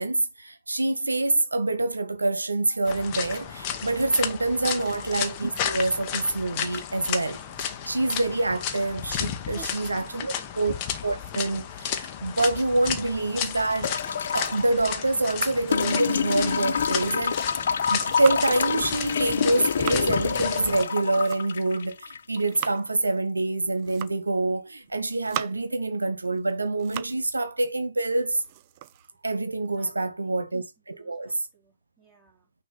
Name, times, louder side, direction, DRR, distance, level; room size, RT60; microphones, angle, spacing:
voice 1, 0.0-10.7 11.0-14.0 14.3-28.4 29.2-31.5, right 2 dB, 80° right, 0.6 m, -26 dB
sound 1, 2.9-20.8, left 9 dB, 30° left, 0.9 m, -33 dB
voice 2, 9.4-10.5 29.8-30.4 30.8-32.5, right 8 dB, 10° right, 2.8 m, -53 dB
sound 2, 13.8-14.7 15.7-22.7 24.1-24.2, left 7 dB, 60° left, 0.4 m, -27 dB
sound 3, 17.8-18.7 19.3-20.1 20.9-21.7 22.1-22.9 23.7-24.3 24.9-25.8 26.2-27.3 27.6-27.7 28.2-29.9, right 13 dB, 35° right, 0.4 m, -39 dB
6.1 x 2.8 x 5.4 m
figure-of-eight pair, 125°, 0 cm